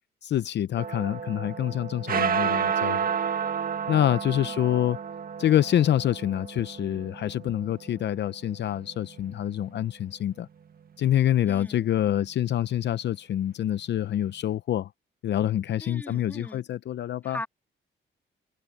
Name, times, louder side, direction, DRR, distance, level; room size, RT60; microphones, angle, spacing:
voice 1, 0.2-3.2 3.9-5.0 5.4-10.5 11.0-14.9 15.2-17.4, left 11 dB, 60° left, 0.7 m, -26 dB
sound 1, 0.8-9.3, right 7 dB, 45° right, 1.6 m, -31 dB
voice 2, 11.5-11.8 15.8-16.6 17.2-17.5, left 1 dB, 10° left, 2.5 m, -40 dB
cardioid pair, 90°, 20 cm